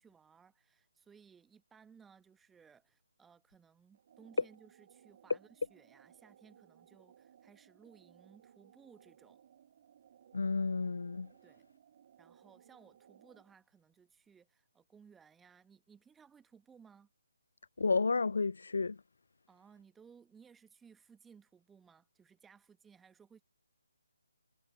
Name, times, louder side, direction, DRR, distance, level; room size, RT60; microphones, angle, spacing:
voice 1, 0.0-9.4 11.4-11.6 12.2-17.1 19.5-23.4, right 6 dB, 5° right, 1.3 m, -61 dB
sound 1, 3.9-13.5, right 9 dB, 40° right, 1.8 m, -63 dB
voice 2, 10.3-11.3 17.8-19.0, left 4 dB, 60° left, 0.6 m, -31 dB
figure-of-eight pair, 145°, 0 cm